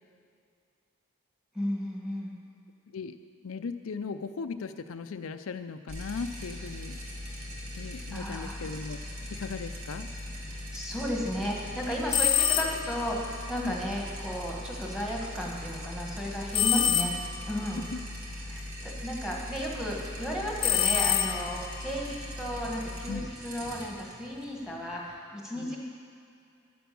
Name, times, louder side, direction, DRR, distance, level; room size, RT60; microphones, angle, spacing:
voice 1, 1.5-2.4 8.1-8.6 10.7-17.1 17.5-17.8 18.5-25.8, equal, 5° right, -2 dB, 1.7 m, -34 dB
voice 2, 3.4-7.0 7.8-9.0 9.3-10.1 13.6-13.7 17.8-18.0 23.1-23.3 25.6-25.8, left 5 dB, 75° left, 8 dB, 0.5 m, -37 dB
sound 1, 5.9-25.2, left 1 dB, 85° right, 2.2 m, -40 dB
sound 2, 12.1-13.0 16.5-17.5 20.6-21.7, left 9 dB, 25° left, 0.6 m, -26 dB
10.5 x 10.5 x 7.0 m, 2.4 s
head